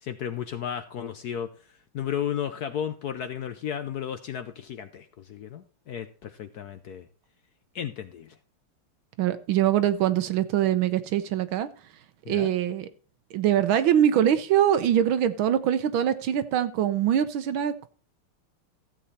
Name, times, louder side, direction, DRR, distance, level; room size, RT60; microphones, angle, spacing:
voice 1, 0.0-1.5 1.9-7.1 7.7-8.4 12.2-12.5, left 9 dB, 65° left, 10 dB, 0.9 m, -34 dB
voice 2, 9.2-11.7 12.3-12.9 13.3-17.9, right 10 dB, 75° right, 12 dB, 1.5 m, -23 dB
14.5 x 7.7 x 4.1 m, 0.39 s
omnidirectional pair, 2.3 m